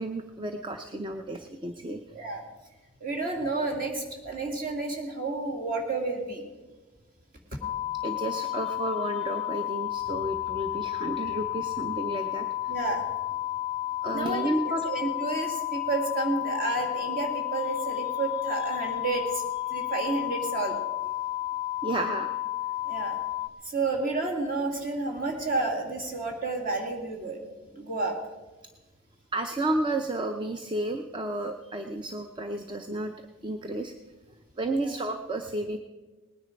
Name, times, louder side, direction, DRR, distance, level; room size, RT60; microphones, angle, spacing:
voice 1, 0.0-2.0 8.0-12.8 14.0-14.9 21.8-22.3 29.3-33.1 33.4-33.9 34.6-35.8, right 1 dB, 20° right, 6 dB, 0.5 m, -32 dB
voice 2, 2.1-2.4 3.0-6.4 12.7-13.0 14.1-14.6 14.8-19.4 19.7-20.8 22.9-23.2 23.6-27.4 27.7-28.2 34.7-34.9, right 3 dB, 40° right, 1 dB, 2.3 m, -30 dB
sound 1, 7.6-23.5, left 15 dB, 25° left, 0.4 m, -32 dB
19.0 x 9.8 x 5.1 m, 1.2 s
head